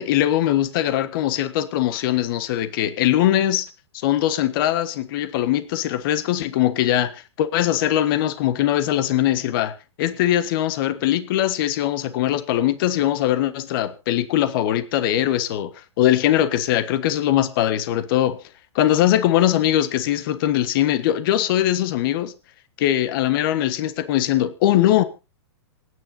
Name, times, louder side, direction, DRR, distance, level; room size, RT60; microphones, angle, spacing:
voice 1, 0.0-3.7 3.9-15.7 16.0-18.4 18.7-22.3 22.8-25.0, left 12 dB, 50° left, 1.4 m, -21 dB
26.5 x 9.8 x 2.8 m
hypercardioid pair, 125°, 14 cm